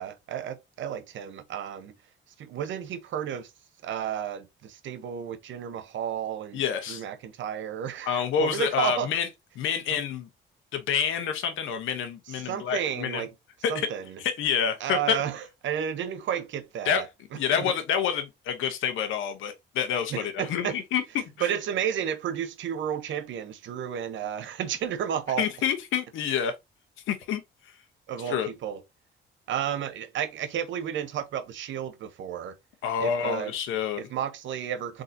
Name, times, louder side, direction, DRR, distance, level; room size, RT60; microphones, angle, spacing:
voice 1, 0.0-1.9 2.4-3.5 3.8-9.1 9.9-10.0 12.3-13.3 13.7-14.2 14.8-17.1 17.3-17.7 20.1-20.8 21.4-25.5 28.1-28.8 29.5-32.6 33.0-33.5 34.0-35.0, right 9 dB, 70° right, 0.8 m, -32 dB
voice 2, 6.5-7.0 8.1-9.3 9.6-10.3 10.7-13.2 13.6-13.7 14.2-15.2 16.8-17.0 17.3-21.5 25.4-26.5 27.1-27.4 28.2-28.5 32.8-34.1, left 8 dB, 85° left, 1.0 m, -28 dB
3.9 x 3.9 x 2.7 m
cardioid pair, 90°, 20 cm